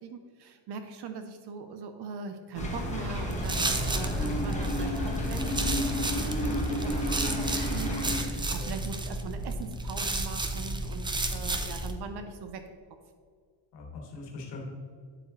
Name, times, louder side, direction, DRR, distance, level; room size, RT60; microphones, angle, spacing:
voice 1, 0.0-12.6, right 5 dB, 60° right, 7 dB, 0.7 m, -41 dB
sound 1, 2.5-8.2, left 1 dB, 15° left, 1.4 m, -31 dB
sound 2, 3.3-11.9, right 2 dB, 10° right, 0.4 m, -32 dB
voice 2, 13.7-14.6, left 3 dB, 65° left, -1 dB, 2.1 m, -41 dB
9.1 x 7.7 x 3.1 m, 2.1 s
cardioid pair, 160°, 46 cm